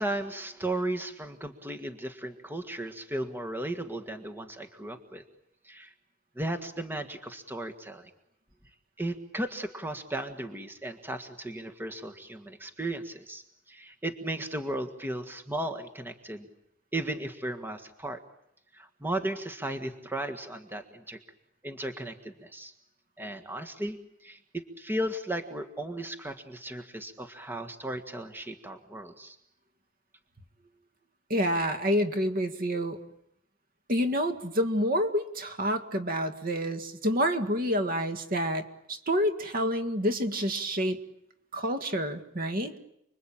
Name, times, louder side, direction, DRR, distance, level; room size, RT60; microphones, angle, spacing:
voice 1, 0.0-5.2 5.6-5.9 6.4-8.1 9.0-16.5 16.9-18.2 18.7-21.2 21.6-22.7 23.2-29.4, right 1 dB, 10° right, 5 dB, 1.7 m, -35 dB
voice 2, 31.3-33.0 33.9-41.0 41.5-42.8, equal, 45° right, 8 dB, 1.9 m, -28 dB
30.0 x 22.5 x 8.8 m, 0.77 s
head